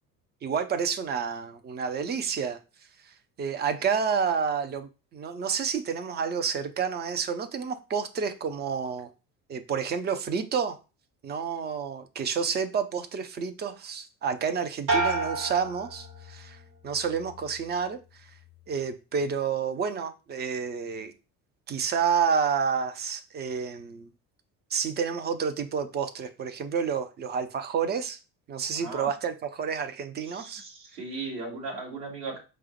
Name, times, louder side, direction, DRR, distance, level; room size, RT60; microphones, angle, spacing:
voice 1, 0.4-2.6 3.4-9.1 9.5-10.8 11.2-16.6 16.8-18.0 18.7-21.1 21.7-24.1 24.7-28.2 28.5-30.6, right 6 dB, 25° right, 9 dB, 0.5 m, -29 dB
sound 1, 14.9-16.6 17.0-17.6, right 3 dB, 85° right, 1.0 m, -30 dB
voice 2, 30.3-32.4, right 3 dB, 60° right, -3 dB, 2.3 m, -37 dB
4.7 x 2.0 x 4.4 m, 0.31 s
figure-of-eight pair, 55°, 46 cm